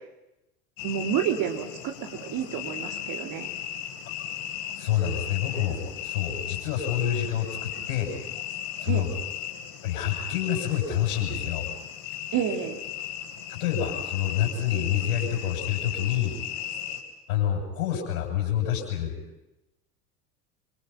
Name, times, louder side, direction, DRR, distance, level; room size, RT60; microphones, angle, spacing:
sound 1, 0.8-17.0, left 10 dB, 50° left, 4.7 m, -36 dB
voice 1, 0.8-3.5 8.9-9.1 12.3-12.8, right 9 dB, 45° right, 5 dB, 3.6 m, -29 dB
voice 2, 4.8-8.1 8.8-9.1 9.8-11.6 13.5-16.3 17.3-19.1, left 10 dB, 70° left, -1 dB, 7.1 m, -27 dB
28.5 x 24.5 x 5.7 m, 0.92 s
figure-of-eight pair, 80°, 45 cm